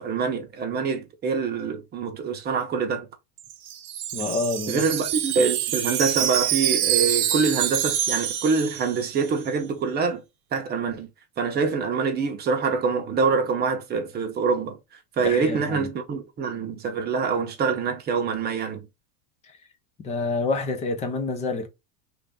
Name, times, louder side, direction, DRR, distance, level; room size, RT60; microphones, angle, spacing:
voice 1, 0.0-3.1 4.7-10.2 10.5-11.1 11.4-14.8 15.2-18.9, right 5 dB, 20° right, 0.8 m, -25 dB
Wind chime, 3.4-9.4, right 11 dB, 75° right, 1.1 m, -26 dB
voice 2, 4.1-4.8 15.2-15.9 20.0-21.7, left 3 dB, 15° left, 0.4 m, -27 dB
3.3 x 2.6 x 3.4 m
supercardioid pair, 150°, 45 cm